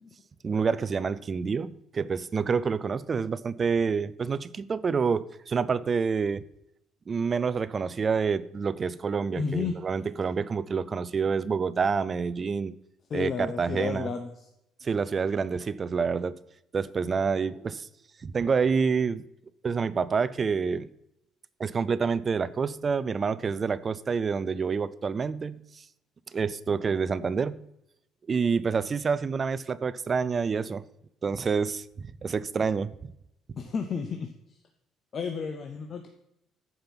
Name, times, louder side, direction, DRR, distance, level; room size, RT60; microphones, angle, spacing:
voice 1, 0.4-6.4 7.1-12.8 13.1-14.1 14.8-16.4 16.7-17.9 18.2-19.2 19.6-20.9 21.6-25.8 26.3-27.6 28.3-30.8 31.2-33.1, right 5 dB, 30° right, 0.5 m, -28 dB
voice 2, 9.4-9.8 13.1-14.3 33.6-34.3 35.1-36.1, left 6 dB, 35° left, 0.9 m, -32 dB
13.5 x 5.3 x 5.9 m
cardioid pair, 140°, 0 cm